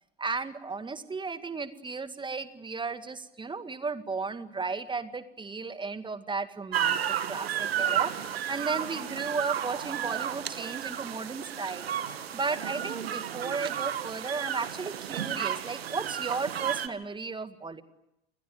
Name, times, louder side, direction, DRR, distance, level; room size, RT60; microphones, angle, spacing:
voice 1, 0.2-11.9 12.3-17.8, right 4 dB, 15° right, 12 dB, 1.9 m, -35 dB
sound 1, 6.7-16.9, right 10 dB, 70° right, 2.0 m, -32 dB
29.0 x 21.0 x 9.2 m, 0.86 s
figure-of-eight pair, 75°, 31 cm